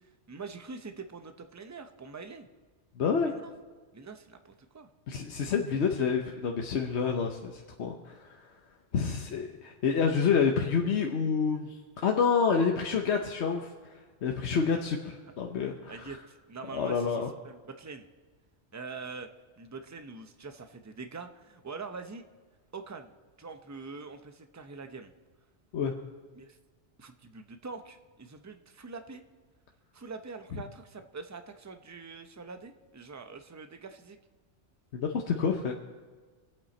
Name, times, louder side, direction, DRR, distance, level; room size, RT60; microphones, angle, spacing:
voice 1, 0.0-2.5 3.2-3.5 3.9-4.9 15.9-18.1 18.7-19.3 19.6-22.2 22.7-23.1 23.4-25.1 26.3-26.6 27.0-29.2 29.9-34.2, right 4 dB, 20° right, 7 dB, 0.5 m, -44 dB
voice 2, 3.0-3.3 5.1-8.5 8.9-13.7 14.2-16.1 16.7-17.3 25.7-25.9 30.5-30.6 34.9-35.7, left 6 dB, 70° left, 2 dB, 1.1 m, -28 dB
23.0 x 8.5 x 4.3 m, 1.4 s
omnidirectional pair, 1.2 m